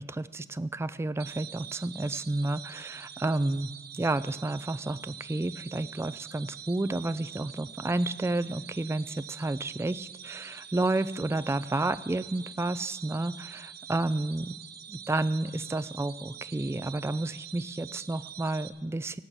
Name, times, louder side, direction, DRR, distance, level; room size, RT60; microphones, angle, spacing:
voice 1, 0.0-14.6 14.9-19.2, right 2 dB, 15° right, 14 dB, 0.3 m, -31 dB
sound 1, 1.2-18.7, right 9 dB, 55° right, 1.0 m, -45 dB
17.0 x 5.8 x 8.0 m, 1.2 s
head